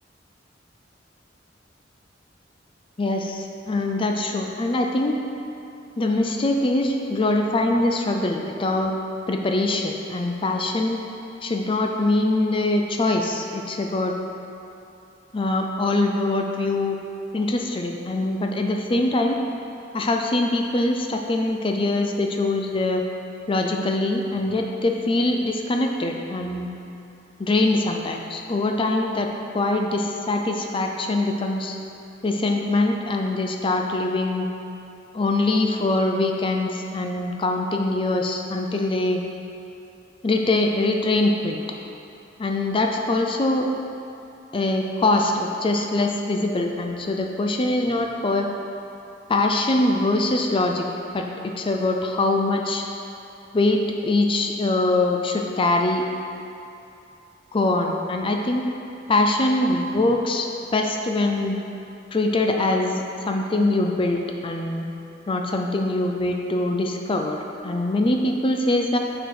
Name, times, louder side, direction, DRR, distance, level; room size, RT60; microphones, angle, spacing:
voice 1, 3.0-5.1 6.0-8.9 9.3-11.0 11.4-14.1 15.3-17.0 17.3-19.4 19.9-23.0 23.5-26.7 27.4-29.3 29.5-31.8 32.2-34.5 35.1-39.2 40.2-41.6 42.4-43.7 44.5-48.5 49.3-52.8 53.5-56.0 57.5-58.7 59.1-60.5 60.7-61.6 62.1-64.9 65.3-69.0, left 2 dB, 30° left, 3 dB, 0.5 m, -23 dB
6.4 x 6.0 x 4.7 m, 2.7 s
head